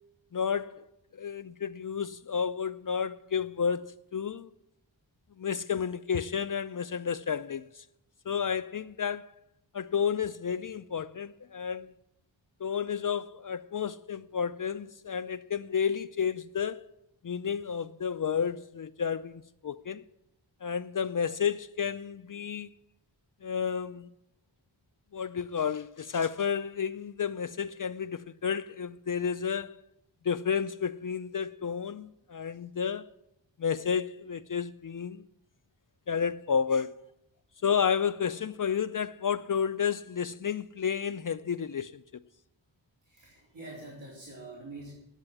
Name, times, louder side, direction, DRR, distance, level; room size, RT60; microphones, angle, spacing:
voice 1, 0.3-0.9 1.1-4.5 5.4-7.8 8.3-9.3 9.7-11.9 12.6-16.8 17.2-20.0 20.6-22.7 23.4-24.1 25.1-29.8 30.2-33.1 33.6-35.3 36.1-36.9 37.6-42.0, left 7 dB, 45° left, 0.5 m, -31 dB
voice 2, 43.0-44.9, right 2 dB, 75° right, 4.1 m, -45 dB
9.9 x 7.9 x 9.7 m
cardioid pair, 45°, 46 cm